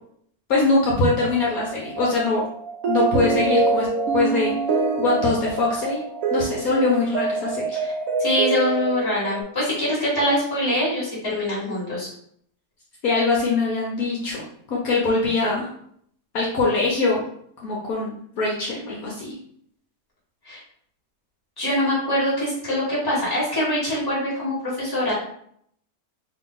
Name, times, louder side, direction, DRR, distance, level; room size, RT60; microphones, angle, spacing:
voice 1, 0.5-2.4 2.9-3.9 4.1-4.5 5.0-6.0 6.3-7.8 13.0-14.4 14.7-15.7 16.3-17.2 17.6-19.4, left 3 dB, 65° left, -4 dB, 1.2 m, -22 dB
sound 1, 1.2-9.4, right 3 dB, 65° right, 1.0 m, -25 dB
voice 2, 8.2-12.1 20.4-20.6 21.6-25.1, left 1 dB, 15° left, -7 dB, 1.5 m, -24 dB
2.9 x 2.8 x 3.7 m, 0.66 s
omnidirectional pair, 1.7 m